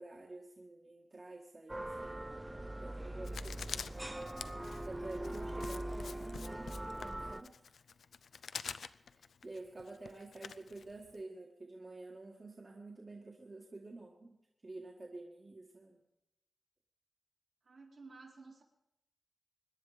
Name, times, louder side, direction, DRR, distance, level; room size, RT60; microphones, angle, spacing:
voice 1, 0.0-2.2 2.8-3.3 3.7-3.8 4.8-7.7 9.1-14.4 14.6-16.0, right 2 dB, 35° right, -2 dB, 1.9 m, -49 dB
sound 1, 1.7-7.4, right 1 dB, 15° right, 0.6 m, -42 dB
voice 2, 2.5-3.4 17.6-18.6, right 3 dB, 60° right, -1 dB, 3.8 m, -56 dB
Writing, 3.3-11.2, left 6 dB, 90° left, 0.5 m, -47 dB
25.0 x 11.0 x 5.1 m, 0.91 s
wide cardioid pair, 105°, 0 cm